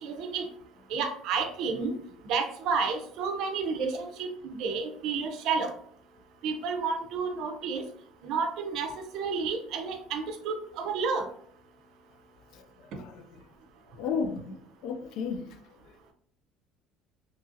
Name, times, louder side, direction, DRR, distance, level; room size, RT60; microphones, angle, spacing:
voice 1, 0.0-0.5 0.9-1.9 2.3-5.7 6.4-7.8 8.2-11.3, right 5 dB, 65° right, 0.5 m, -31 dB
voice 2, 12.5-13.5 13.9-16.1, left 5 dB, 65° left, 0.3 m, -36 dB
2.8 x 2.4 x 2.6 m
cardioid pair, 120°, 0 cm